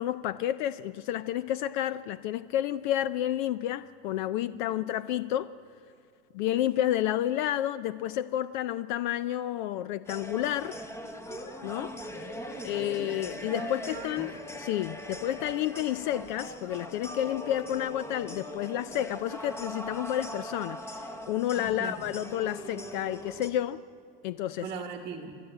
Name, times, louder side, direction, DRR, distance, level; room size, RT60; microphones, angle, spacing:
voice 1, 0.0-5.5 6.3-10.8 11.6-12.0 12.6-23.8 24.2-24.7, left 12 dB, 50° left, 16 dB, 0.4 m, -30 dB
sound 1, 10.1-23.5, equal, 10° left, 0.9 m, -41 dB
voice 2, 12.1-14.3 21.5-22.0 24.6-25.3, right 5 dB, 15° right, 5 dB, 1.1 m, -41 dB
29.0 x 12.0 x 8.9 m, 2.4 s
supercardioid pair, 175°, 30 cm